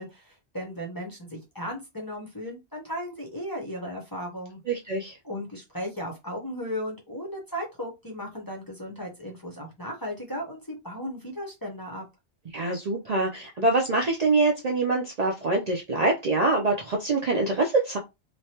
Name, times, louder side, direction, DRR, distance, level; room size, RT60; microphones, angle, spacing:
voice 1, 0.0-4.6 5.2-12.1, equal, 25° left, 0.6 m, -36 dB
voice 2, 4.7-5.1 12.5-18.0, right 2 dB, 50° right, 0.5 m, -24 dB
3.1 x 2.2 x 2.8 m
omnidirectional pair, 1.1 m